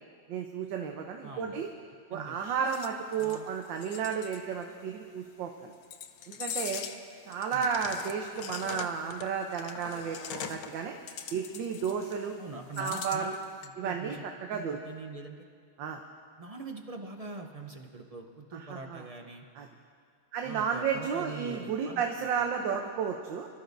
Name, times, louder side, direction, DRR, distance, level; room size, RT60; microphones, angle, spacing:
voice 1, 0.3-1.7 2.1-5.7 6.3-6.8 7.3-11.0 11.3-12.3 12.8-13.3 13.8-14.2 14.5-14.8 15.8-16.0 18.5-19.0 19.6-19.7 20.3-23.5, right 6 dB, 85° right, 3 dB, 1.5 m, -32 dB
voice 2, 1.2-1.6 2.1-2.4 3.2-3.5 7.5-7.7 12.4-13.3 13.8-14.2 14.5-15.5 16.4-19.4 20.4-22.0 22.4-22.5, right 3 dB, 65° right, 3 dB, 0.3 m, -43 dB
sound 1, 2.7-4.4 5.8-7.0 7.3-10.8 11.1-12.3 12.7-13.7, left 7 dB, 65° left, 1.0 m, -41 dB
26.5 x 13.5 x 2.6 m, 2.1 s
omnidirectional pair, 2.0 m